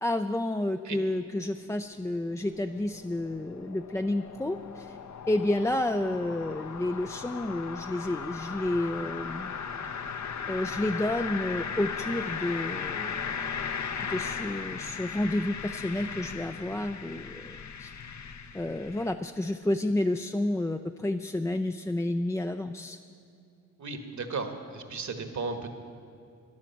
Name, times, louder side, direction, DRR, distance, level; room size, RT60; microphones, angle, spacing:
voice 1, 0.0-5.0 5.3-9.5 10.4-13.4 14.1-17.9 18.5-23.0, left 1 dB, 10° left, 6 dB, 0.4 m, -30 dB
sound 1, 1.6-19.1, left 6 dB, 60° left, 0.8 m, -37 dB
voice 2, 23.8-25.7, right 4 dB, 60° right, 6 dB, 1.4 m, -35 dB
14.0 x 11.0 x 5.8 m, 2.5 s
cardioid pair, 70°, 32 cm